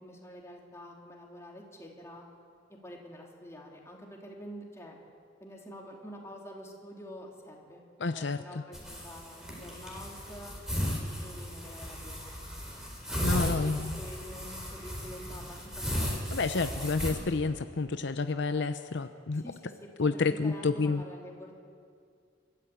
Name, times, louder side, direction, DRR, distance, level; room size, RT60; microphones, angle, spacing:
voice 1, 0.0-2.2 2.8-5.0 5.4-7.8 8.1-10.5 11.2-12.4 13.1-16.9 19.3-21.5, equal, 15° left, -1 dB, 3.4 m, -47 dB
voice 2, 8.0-8.6 13.2-14.0 16.3-19.4 20.0-21.0, left 4 dB, 65° left, 9 dB, 0.7 m, -29 dB
sound 1, 8.7-17.1, equal, 5° right, 4.6 m, -35 dB
28.5 x 13.5 x 8.5 m, 2.3 s
head